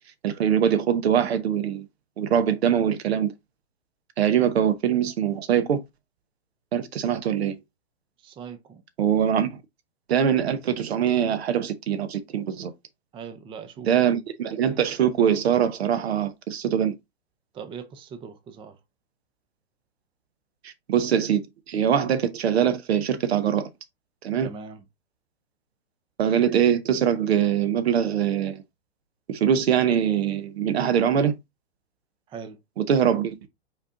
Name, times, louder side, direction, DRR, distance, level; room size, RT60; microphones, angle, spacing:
voice 1, 0.2-1.9 2.2-3.3 4.2-5.8 6.7-7.6 9.0-9.6 10.1-12.7 13.9-17.0 20.9-23.7 24.2-24.5 26.2-28.6 29.3-31.3 32.8-33.3, right 9 dB, 70° right, 0.9 m, -23 dB
voice 2, 8.2-8.8 13.1-13.9 17.5-18.8 24.4-24.8 32.3-32.6, right 6 dB, 15° right, 0.5 m, -40 dB
4.9 x 4.3 x 2.5 m
hypercardioid pair, 115°, 32 cm